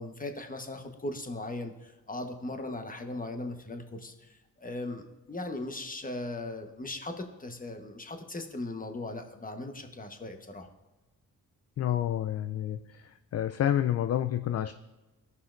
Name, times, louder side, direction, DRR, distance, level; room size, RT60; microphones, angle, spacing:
voice 1, 0.0-10.7, left 2 dB, 25° left, 6 dB, 1.1 m, -38 dB
voice 2, 11.8-12.8 13.3-14.7, left 11 dB, 45° left, 9 dB, 0.4 m, -28 dB
14.5 x 5.6 x 2.5 m, 1.1 s
supercardioid pair, 55°, 36 cm